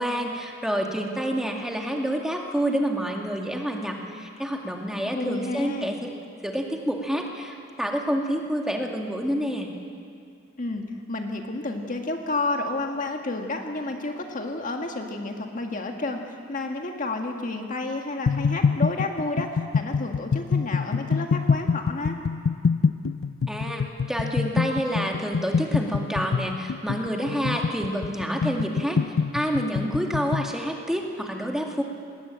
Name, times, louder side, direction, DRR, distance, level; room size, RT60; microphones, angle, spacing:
voice 1, 0.0-6.1 6.4-9.7 23.5-23.8 24.1-29.0 29.3-31.8, equal, 5° right, 1 dB, 2.2 m, -28 dB
voice 2, 5.1-5.9 10.6-22.1, left 2 dB, 45° left, 3 dB, 1.7 m, -30 dB
sound 1, 18.3-30.5, left 5 dB, 85° left, 0.5 m, -25 dB
20.5 x 19.0 x 8.8 m, 2.3 s
head